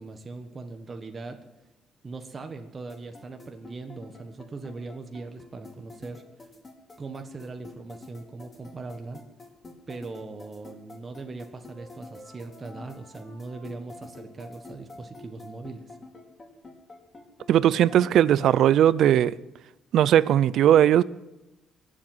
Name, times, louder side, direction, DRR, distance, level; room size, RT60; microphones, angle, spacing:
voice 1, 0.0-1.4 2.0-6.2 7.0-9.2 9.9-16.0, right 3 dB, 35° right, 1.4 m, -40 dB
sound 1, 2.9-18.5, left 2 dB, 30° left, 5.0 m, -46 dB
voice 2, 17.5-19.3 19.9-21.0, right 11 dB, 75° right, 0.5 m, -19 dB
23.0 x 7.7 x 7.9 m
cardioid pair, 90°, 0 cm